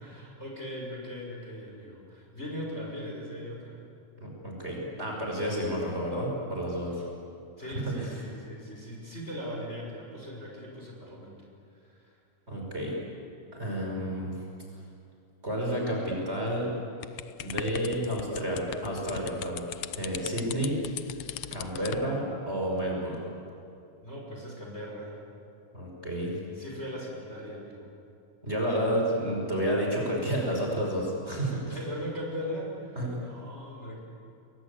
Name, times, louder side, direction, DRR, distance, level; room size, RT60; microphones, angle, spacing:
voice 1, 0.0-3.8 7.6-11.3 11.8-12.1 24.0-25.2 26.5-27.9 28.9-29.0 29.3-29.4 31.7-34.0, equal, 20° left, -2 dB, 5.8 m, -39 dB
voice 2, 4.2-7.1 7.7-8.1 12.5-13.0 13.5-14.3 15.4-16.7 17.4-19.6 19.9-20.8 21.5-23.2 25.7-26.4 28.4-31.8 33.0-33.2, equal, 20° right, -1 dB, 5.7 m, -30 dB
sound 1, 17.0-22.1, left 11 dB, 70° left, 1.4 m, -39 dB
29.0 x 23.5 x 8.5 m, 2.7 s
omnidirectional pair, 3.3 m